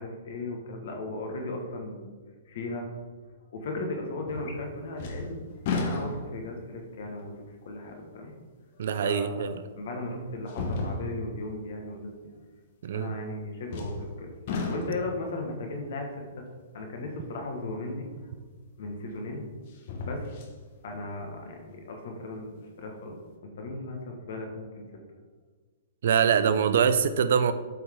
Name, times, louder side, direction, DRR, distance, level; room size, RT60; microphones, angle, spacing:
voice 1, 0.0-2.1 2.5-2.9 3.5-5.4 5.8-8.3 9.0-12.1 12.9-14.3 14.7-16.5 16.7-18.1 18.8-19.4 20.0-20.3 20.8-23.2 23.4-24.8, left 2 dB, 65° left, 2 dB, 1.6 m, -36 dB
sound 1, 4.3-4.7 5.0-6.5 7.2-7.3 9.1-9.2 10.5-11.4 13.7-14.1 14.5-15.2 18.2-18.3 19.7-20.6 21.0-21.1, left 3 dB, 50° left, 1.2 m, -33 dB
voice 2, 8.8-9.6 12.8-13.2 26.0-27.5, right 7 dB, 70° right, 12 dB, 0.5 m, -24 dB
8.0 x 4.6 x 3.7 m, 1.5 s
hypercardioid pair, 140°, 0 cm